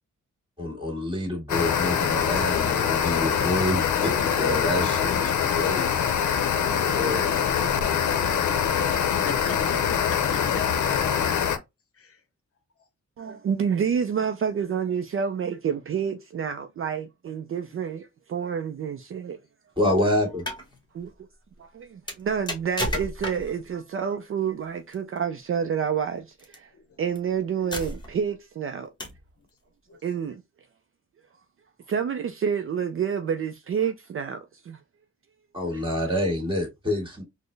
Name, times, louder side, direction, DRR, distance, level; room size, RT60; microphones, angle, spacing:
voice 1, 0.6-6.0 6.6-7.2 19.8-20.4 35.5-37.2, left 1 dB, 15° right, 1.9 m, -27 dB
sound 1, 1.5-11.6, left 8 dB, 90° left, 0.6 m, -24 dB
voice 2, 9.2-10.6 11.9-12.2 26.7-27.0 29.9-30.0, left 5 dB, 50° left, 0.7 m, -39 dB
voice 3, 13.2-19.4 20.9-21.1 21.6-26.7 27.0-28.9 30.0-30.4 31.9-34.8 35.7-35.8, right 7 dB, 45° right, 0.4 m, -28 dB
sound 2, 20.3-20.7 22.1-23.6 24.9-25.2 26.4-26.6 27.2-27.3 27.7-28.3 29.0-29.3, left 1 dB, 15° left, 1.1 m, -32 dB
4.1 x 2.1 x 3.2 m
wide cardioid pair, 120°, 29 cm